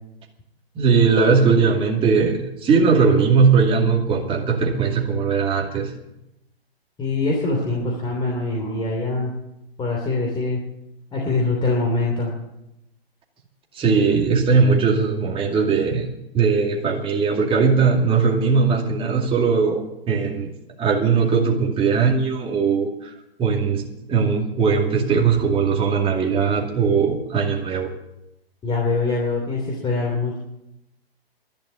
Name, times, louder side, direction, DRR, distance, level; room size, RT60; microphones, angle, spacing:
voice 1, 0.8-5.9 13.7-16.1 16.3-20.5 20.8-23.1 23.4-23.8 24.1-27.9, right 5 dB, 15° right, 0 dB, 2.4 m, -19 dB
voice 2, 7.0-9.3 9.8-10.6 11.1-12.3 28.6-30.4, left 3 dB, 15° left, -1 dB, 3.0 m, -23 dB
12.0 x 10.5 x 9.6 m, 0.88 s
hypercardioid pair, 130°, 31 cm